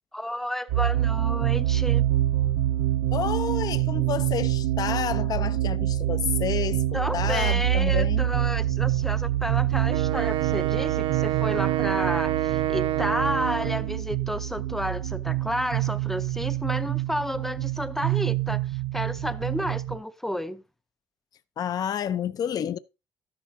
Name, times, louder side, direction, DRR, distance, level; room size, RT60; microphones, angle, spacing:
voice 1, 0.1-2.1 6.9-20.6, equal, 5° left, 0.6 m, -31 dB
sound 1, 0.7-20.0, right 13 dB, 85° right, 1.2 m, -26 dB
voice 2, 3.1-6.8 7.1-8.3 21.6-22.8, left 9 dB, 45° left, 0.6 m, -29 dB
Wind instrument woodwind instrument, 9.9-13.9, right 14 dB, 70° right, 0.8 m, -28 dB
12.5 x 10.5 x 2.7 m
cardioid pair, 130°, 9 cm